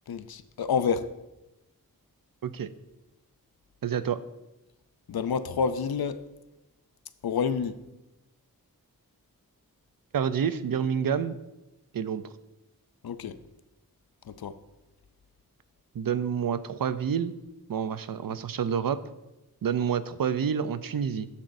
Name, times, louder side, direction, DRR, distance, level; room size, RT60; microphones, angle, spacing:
voice 1, 0.1-1.1 5.1-6.2 7.2-7.8 13.0-13.4 14.3-14.5, left 6 dB, 85° left, 0.5 m, -28 dB
voice 2, 3.8-4.2 10.1-11.4 11.9-12.3 15.9-17.4 17.7-19.0 19.6-21.3, right 7 dB, 70° right, 0.5 m, -28 dB
10.0 x 7.3 x 2.6 m
wide cardioid pair, 40°, 36 cm